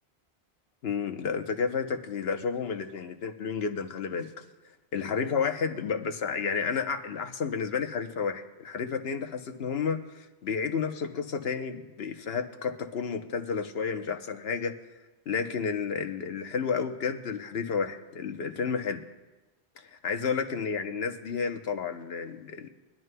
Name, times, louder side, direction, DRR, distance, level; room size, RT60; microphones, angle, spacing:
voice 1, 0.8-4.3 4.9-14.7 15.3-19.0 19.8-22.7, left 6 dB, 70° left, 6 dB, 1.1 m, -31 dB
23.0 x 11.0 x 2.2 m, 1.1 s
omnidirectional pair, 1.1 m